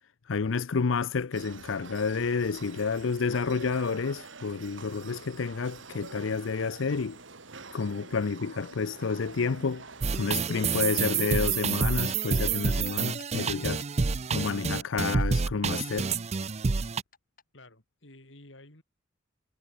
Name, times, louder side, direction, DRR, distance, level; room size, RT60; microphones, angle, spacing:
voice 1, 0.3-7.2 7.7-9.8 10.2-13.8 14.3-16.1, left 5 dB, 85° left, 0.6 m, -30 dB
sound 1, 1.3-11.5, right 4 dB, 75° right, 3.8 m, -47 dB
sound 2, 8.5-9.2 9.6-10.4 10.7-11.0 11.3-12.9 13.2-14.0 14.4-16.2 16.4-17.4, left 6 dB, 50° left, 5.7 m, -54 dB
sound 3, 10.0-17.0, right 5 dB, 35° right, 0.5 m, -28 dB
voice 2, 17.5-18.8, left 2 dB, 70° left, 4.4 m, -52 dB
head